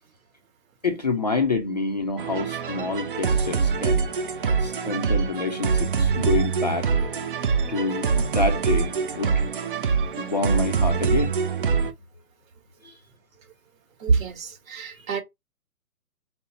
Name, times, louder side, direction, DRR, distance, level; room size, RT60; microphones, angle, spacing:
voice 1, 0.8-4.1 4.6-6.9 7.7-9.5 10.2-11.3 12.8-13.0, left 3 dB, 30° left, 0.4 m, -27 dB
sound 1, 2.2-11.9, right 5 dB, 40° right, 0.4 m, -24 dB
voice 2, 14.0-15.2, right 4 dB, 60° right, 1.6 m, -25 dB
5.3 x 2.0 x 4.0 m
hypercardioid pair, 150°, 46 cm